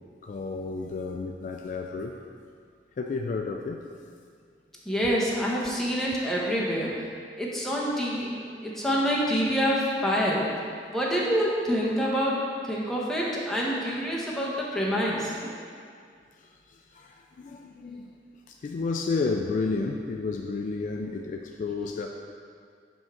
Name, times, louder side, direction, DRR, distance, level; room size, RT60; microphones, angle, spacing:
voice 1, 0.2-2.2 3.0-3.9 16.4-18.1 18.5-22.1, left 4 dB, 45° left, 2 dB, 0.3 m, -31 dB
voice 2, 4.8-7.1 7.4-10.5 10.9-12.4 12.6-15.6, equal, ahead, -5 dB, 0.9 m, -27 dB
5.2 x 3.7 x 5.8 m, 2.1 s
head